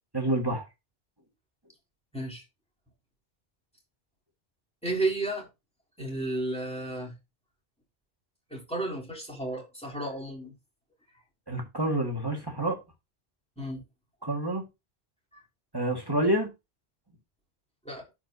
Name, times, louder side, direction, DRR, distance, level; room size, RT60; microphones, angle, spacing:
voice 1, 0.1-0.7 11.5-12.8 14.2-14.6 15.7-16.5, right 1 dB, 20° right, 1.8 m, -28 dB
voice 2, 4.8-5.5 6.0-7.1 8.5-10.5 13.6-13.8 15.3-15.4 17.8-18.0, right 2 dB, 5° left, 3.4 m, -32 dB
12.0 x 4.7 x 2.7 m
omnidirectional pair, 1.1 m